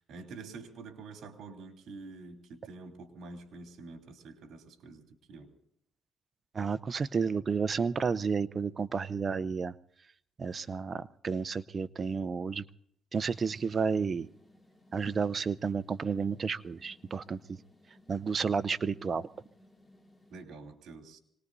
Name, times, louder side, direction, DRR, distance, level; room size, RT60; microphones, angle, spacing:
voice 1, 0.0-5.5 20.3-21.2, right 3 dB, 70° right, 3 dB, 3.0 m, -47 dB
voice 2, 6.5-9.7 10.4-12.6 13.1-14.3 14.9-17.6 18.1-19.2, right 5 dB, 40° right, 16 dB, 0.6 m, -31 dB
sound 1, 13.1-20.4, left 1 dB, 15° left, 2.4 m, -61 dB
26.0 x 19.5 x 2.7 m, 0.70 s
cardioid pair, 90°, 0 cm